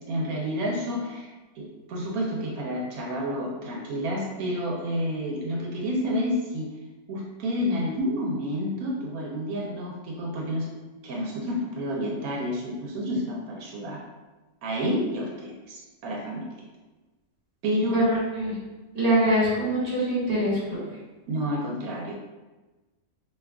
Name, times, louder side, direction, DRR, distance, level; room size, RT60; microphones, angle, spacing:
voice 1, 0.1-1.3 1.6-6.7 7.1-10.7 11.0-14.0 14.6-16.5 17.6-18.0 21.3-22.1, equal, 80° right, -2 dB, 1.0 m, -29 dB
voice 2, 17.9-18.6 18.9-20.8, right 1 dB, 30° right, -7 dB, 1.3 m, -24 dB
2.8 x 2.3 x 3.5 m, 1.2 s
omnidirectional pair, 1.5 m